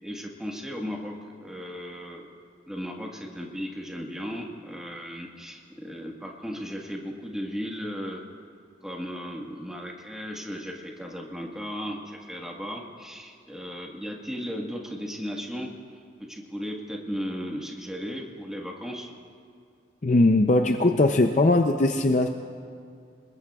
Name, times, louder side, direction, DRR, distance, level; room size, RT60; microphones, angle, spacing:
voice 1, 0.0-1.1 1.4-2.3 2.7-8.2 8.8-15.7 16.3-19.1, equal, 5° right, -1 dB, 1.5 m, -36 dB
voice 2, 20.0-22.3, left 2 dB, 40° left, 5 dB, 0.5 m, -20 dB
28.5 x 21.0 x 2.4 m, 2.2 s
head